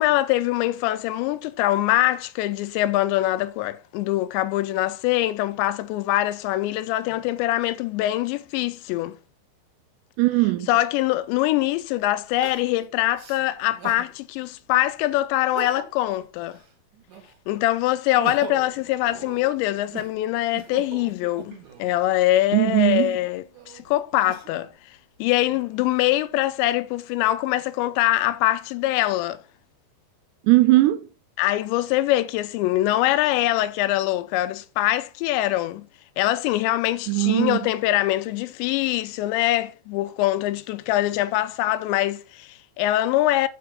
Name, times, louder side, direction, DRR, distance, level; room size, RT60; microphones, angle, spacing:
voice 1, 0.0-9.2 10.7-16.6 17.5-24.7 25.2-29.4 31.4-35.8 36.2-43.5, left 15 dB, 85° left, 2.8 m, -23 dB
voice 2, 10.2-10.7 22.5-23.2 30.4-31.1 37.1-37.6, right 20 dB, 80° right, 2.8 m, -19 dB
Crying sobbing, 11.1-11.2 12.4-14.1 14.6-14.7 15.4-16.1 16.5-17.5 17.9-22.0 22.7-24.7 25.3-26.1, right 9 dB, 60° right, 2.7 m, -41 dB
7.5 x 5.1 x 5.7 m
omnidirectional pair, 5.2 m